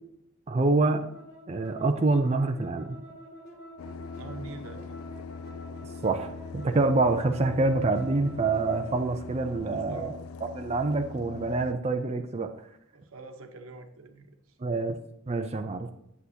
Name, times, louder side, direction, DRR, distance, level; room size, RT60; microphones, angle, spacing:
voice 1, 0.5-1.1 1.5-3.0 6.0-10.1 10.5-12.5 14.6-15.0 15.3-15.9, right 3 dB, 30° right, 5 dB, 0.5 m, -26 dB
sound 1, 0.8-9.0, left 1 dB, 60° left, 3.2 m, -47 dB
sound 2, 3.8-11.7, left 4 dB, 85° left, 0.3 m, -42 dB
voice 2, 4.2-5.0 9.6-10.2 12.9-14.6, right 2 dB, 80° right, 5 dB, 1.0 m, -44 dB
8.4 x 8.0 x 2.8 m, 0.79 s
head